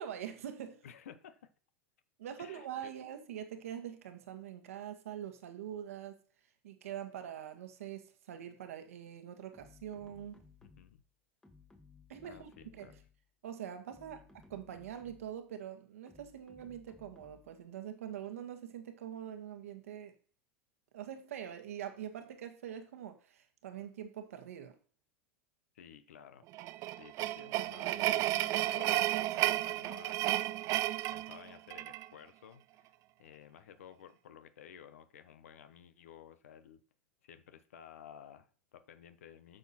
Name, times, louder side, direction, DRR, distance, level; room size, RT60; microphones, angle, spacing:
voice 1, 0.0-0.8 2.2-6.2 6.6-10.5 12.1-12.9 13.4-14.2 14.5-20.1 20.9-24.8, right 10 dB, 80° right, 1.5 m, -44 dB
voice 2, 0.8-1.5 2.4-2.9 10.6-11.0 12.2-12.9 14.1-14.2 25.7-26.7 27.0-30.6 31.1-36.8 37.2-39.6, left 9 dB, 80° left, 1.0 m, -54 dB
sound 1, 9.5-11.1 11.4-13.2 13.8-15.4 16.1-17.6, left 3 dB, 10° left, 1.4 m, -60 dB
sound 2, 26.5-32.1, right 15 dB, 45° right, 0.4 m, -32 dB
10.0 x 6.6 x 4.2 m
hypercardioid pair, 105°, 8 cm